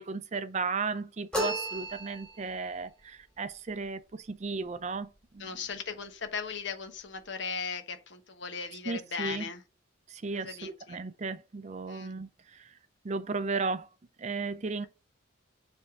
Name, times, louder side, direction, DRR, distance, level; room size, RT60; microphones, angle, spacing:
voice 1, 0.0-5.6 8.8-9.5 10.1-12.7 13.0-13.9 14.2-14.9, right 4 dB, 35° right, 0.4 m, -35 dB
sound 1, 1.3-2.6, equal, 5° left, 2.1 m, -33 dB
voice 2, 5.4-9.6 10.4-11.0 11.9-12.1, left 6 dB, 60° left, 1.1 m, -38 dB
7.2 x 3.5 x 3.8 m
head